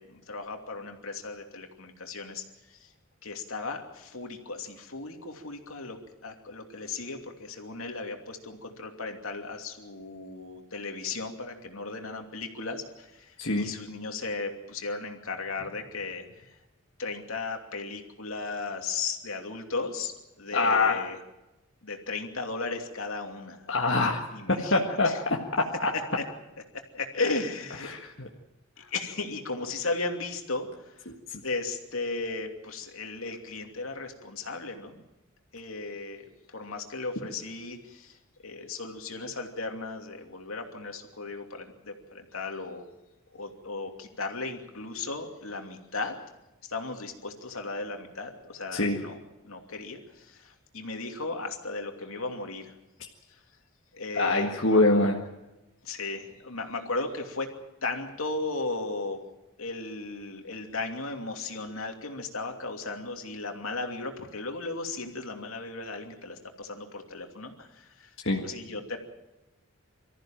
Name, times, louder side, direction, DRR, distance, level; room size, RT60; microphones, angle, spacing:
voice 1, 0.0-2.9 3.2-16.6 17.0-21.2 21.8-23.7 24.3-25.2 26.7-27.9 28.9-31.1 31.4-35.0 35.5-36.3 36.5-38.2 38.4-42.8 43.3-46.2 46.6-49.2 49.4-52.7 53.9-54.8 55.8-57.5 57.8-59.2 59.6-68.1 68.4-69.0, left 3 dB, 75° left, 4 dB, 2.8 m, -36 dB
voice 2, 20.5-21.0 23.7-24.2 24.7-25.9 27.8-28.3 31.3-31.4 48.7-49.0 54.1-55.2 68.2-68.4, left 2 dB, 60° left, -1 dB, 1.8 m, -24 dB
24.5 x 14.5 x 9.1 m, 0.98 s
head